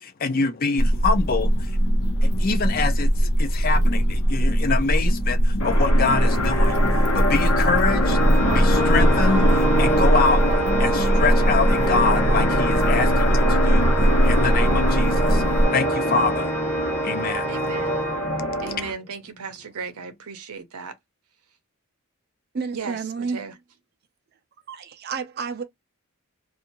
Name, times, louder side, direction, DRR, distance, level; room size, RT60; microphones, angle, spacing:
voice 1, 0.0-1.8 2.2-6.8 7.1-8.2 8.5-10.5 10.8-13.8 14.2-15.4 15.7-16.6 17.0-17.5, left 4 dB, 40° left, 0.4 m, -25 dB
sound 1, 0.8-15.7, equal, 90° left, 0.6 m, -20 dB
sound 2, 5.6-18.9, left 1 dB, 65° left, 0.9 m, -25 dB
Organ, 8.0-18.8, right 1 dB, 5° left, 0.7 m, -28 dB
voice 2, 17.5-18.0 18.6-20.9 22.7-23.5, right 5 dB, 85° right, 0.6 m, -36 dB
voice 3, 22.5-23.4 24.7-25.6, right 5 dB, 45° right, 0.4 m, -30 dB
2.6 x 2.4 x 2.8 m
head